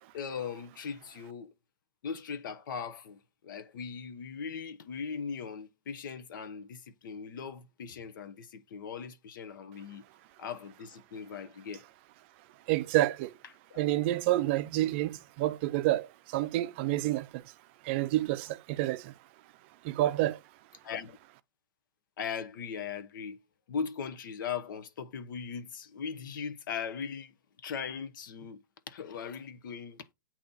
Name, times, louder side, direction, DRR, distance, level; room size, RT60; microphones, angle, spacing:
voice 1, 0.1-1.5 2.0-10.0 10.4-11.8 13.7-13.8 20.8-21.2 22.2-23.4 23.7-27.3 27.6-30.1, left 6 dB, 65° left, 1.0 m, -39 dB
voice 2, 12.7-13.3 13.8-17.4 17.8-19.1 19.8-20.4, right 15 dB, 35° right, 0.5 m, -29 dB
8.4 x 2.9 x 4.0 m
supercardioid pair, 170°, 12 cm